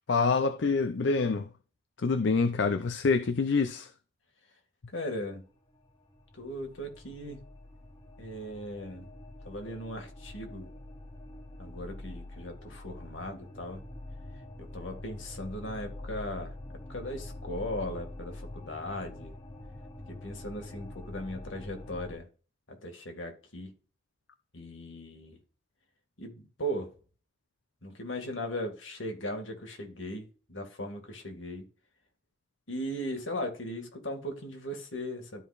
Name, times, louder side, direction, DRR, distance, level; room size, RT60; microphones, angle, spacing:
voice 1, 0.1-1.5 2.0-3.9, left 4 dB, 70° left, 0.5 m, -26 dB
voice 2, 4.9-5.4 6.3-7.4 8.2-9.1 9.4-10.7 11.6-13.8 14.6-16.6 16.9-19.3 20.1-22.3 22.7-23.7 24.5-25.4 26.2-26.9 27.8-31.7 32.7-35.4, equal, 85° left, 2.1 m, -38 dB
sound 1, 5.9-22.2, left 1 dB, 20° left, 1.0 m, -45 dB
12.5 x 5.0 x 2.5 m
head